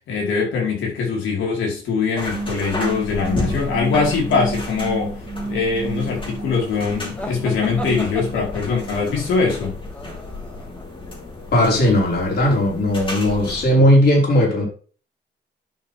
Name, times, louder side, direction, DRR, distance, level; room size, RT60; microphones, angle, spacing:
voice 1, 0.1-5.2 5.4-9.8, left 5 dB, 80° left, -2 dB, 4.7 m, -22 dB
sound 1, 2.2-13.7, left 2 dB, 25° left, 3.4 m, -33 dB
sound 2, 2.3-9.1, right 2 dB, 25° right, 1.6 m, -31 dB
sound 3, 7.2-10.8, equal, 5° left, 2.8 m, -35 dB
voice 2, 11.5-14.7, left 1 dB, 55° left, -2 dB, 5.3 m, -17 dB
11.0 x 5.9 x 3.7 m, 0.39 s
cardioid pair, 90°, 20 cm